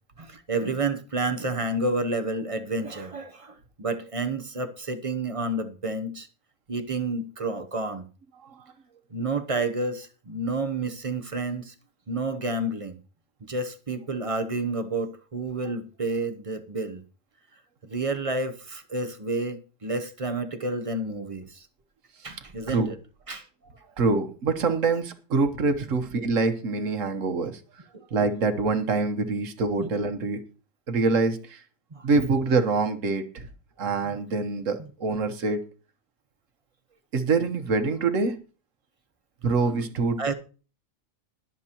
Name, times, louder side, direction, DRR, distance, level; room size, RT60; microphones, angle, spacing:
voice 1, 0.2-6.3 6.7-8.1 9.1-11.7 12.1-13.0 13.5-17.0 17.9-21.7 22.2-23.0 23.3-23.5 27.9-28.0 29.8-29.9 31.9-32.1 34.8-34.9 40.2-40.3, right 2 dB, 30° right, 0.8 m, -30 dB
voice 2, 24.0-27.6 28.1-30.4 30.9-31.6 32.0-33.5 33.8-35.6 37.1-38.4 39.4-40.3, right 3 dB, 75° right, 1.5 m, -25 dB
20.5 x 7.4 x 2.9 m
omnidirectional pair, 1.3 m